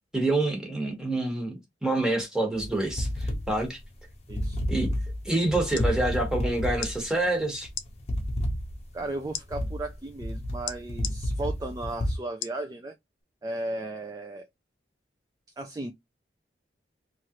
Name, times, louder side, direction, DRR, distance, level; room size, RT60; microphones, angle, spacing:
voice 1, 0.1-3.8 4.7-4.9 5.2-7.7, right 2 dB, 5° right, 1.1 m, -27 dB
sound 1, 2.5-12.1, equal, 35° left, 0.8 m, -31 dB
voice 2, 4.3-4.6 8.9-12.9 13.4-14.5 15.6-15.9, right 2 dB, 20° right, 0.3 m, -35 dB
sound 2, 5.5-5.9 6.8-7.0 7.7-7.9 9.3-9.5 10.7-11.2 12.4-12.6 13.2-13.3, left 10 dB, 85° left, 0.5 m, -35 dB
3.1 x 2.4 x 2.8 m
head